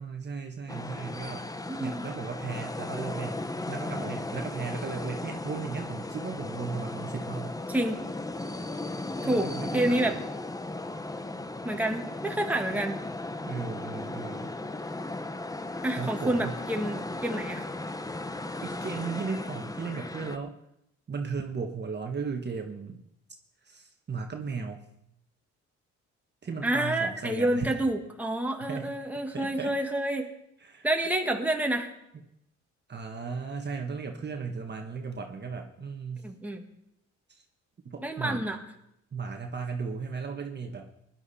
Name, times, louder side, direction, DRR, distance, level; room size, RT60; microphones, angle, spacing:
voice 1, 0.0-1.5 1.8-7.6 9.2-10.1 13.4-14.5 16.0-16.6 18.6-20.6 21.1-23.0 23.6-24.8 26.4-27.7 28.6-28.9 29.3-29.7 30.6-30.9 32.9-36.3 37.3-37.4 37.8-38.5 39.1-40.9, right 5 dB, 35° right, 3 dB, 1.4 m, -36 dB
sound 1, 0.7-20.4, left 2 dB, 10° left, 0.8 m, -36 dB
voice 2, 1.7-2.0 7.7-8.0 9.2-10.2 11.6-13.0 15.8-17.7 26.6-30.3 30.8-31.9 36.2-36.6 38.0-38.6, right 1 dB, 5° right, 2 dB, 1.8 m, -28 dB
19.0 x 11.0 x 4.2 m, 0.81 s
cardioid pair, 90°, 30 cm